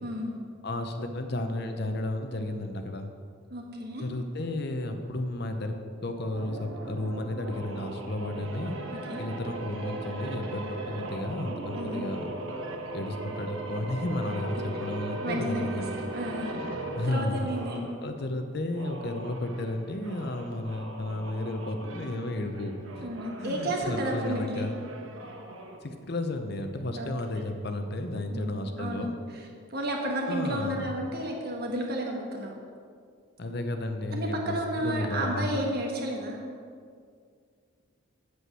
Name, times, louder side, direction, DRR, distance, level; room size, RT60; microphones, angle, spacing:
voice 1, 0.0-0.4 3.5-4.1 8.9-9.2 11.7-12.0 15.2-16.5 17.1-17.8 23.0-24.7 27.0-27.1 28.3-32.5 34.1-36.4, right 1 dB, 50° right, 1 dB, 1.5 m, -32 dB
voice 2, 0.6-3.1 4.0-5.8 6.0-8.8 9.2-12.3 12.9-16.0 16.9-17.5 18.0-23.1 23.4-24.8 25.8-29.1 30.3-30.9 33.4-35.5, left 1 dB, 50° left, 6 dB, 0.8 m, -33 dB
sound 1, 6.3-18.0 18.6-25.8, right 2 dB, 75° right, 1.2 m, -38 dB
8.3 x 8.0 x 6.0 m, 2.2 s
head